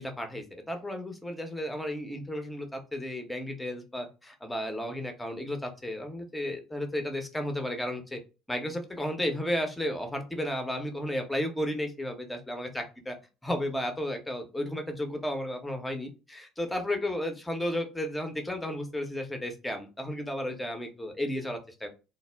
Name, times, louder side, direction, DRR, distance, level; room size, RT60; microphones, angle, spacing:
voice 1, 0.0-8.2 8.5-13.2 13.4-21.9, left 1 dB, 10° left, 5 dB, 0.7 m, -33 dB
2.0 x 2.0 x 3.3 m, 0.31 s
hypercardioid pair, 65°, 0 cm